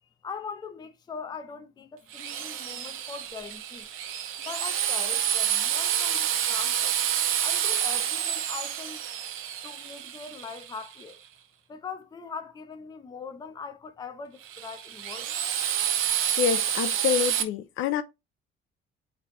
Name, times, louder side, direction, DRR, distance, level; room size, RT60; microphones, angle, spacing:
voice 1, 0.2-3.9 4.4-6.9 7.4-9.0 9.6-11.2 11.7-15.3, left 5 dB, 20° left, 0.5 m, -41 dB
Drill, 2.1-11.0 14.4-17.4, right 10 dB, 90° right, 0.7 m, -28 dB
voice 2, 16.4-18.0, left 10 dB, 75° left, 0.6 m, -27 dB
3.3 x 2.9 x 4.0 m
cardioid pair, 145°, 21 cm